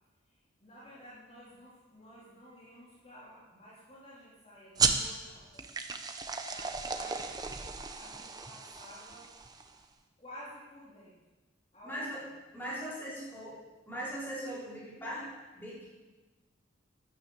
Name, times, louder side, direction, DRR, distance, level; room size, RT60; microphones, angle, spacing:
voice 1, 0.6-5.7 6.5-7.3 8.0-9.3 10.2-11.2 11.7-12.2 13.0-13.2, equal, 30° left, -8 dB, 3.7 m, -52 dB
sound 1, 4.8-9.8, right 4 dB, 20° right, 1.0 m, -34 dB
voice 2, 11.8-12.2 12.5-13.6 13.9-16.0, equal, 10° left, -7 dB, 5.0 m, -40 dB
12.0 x 10.5 x 8.6 m, 1.2 s
head